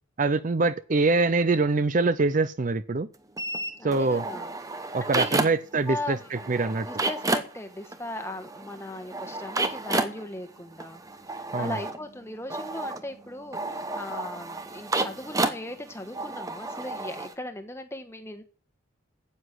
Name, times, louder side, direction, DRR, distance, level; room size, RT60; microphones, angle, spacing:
voice 1, 0.2-3.1 3.8-4.2 4.9-6.9 11.5-11.8, right 3 dB, 40° right, 0.5 m, -24 dB
sound 1, 3.4-5.8 6.1-17.3, right 2 dB, 15° right, 0.8 m, -31 dB
voice 2, 3.8-5.5 5.9-6.5 6.8-11.0 11.3-18.4, left 1 dB, 10° left, 1.2 m, -38 dB
9.7 x 8.2 x 7.5 m
head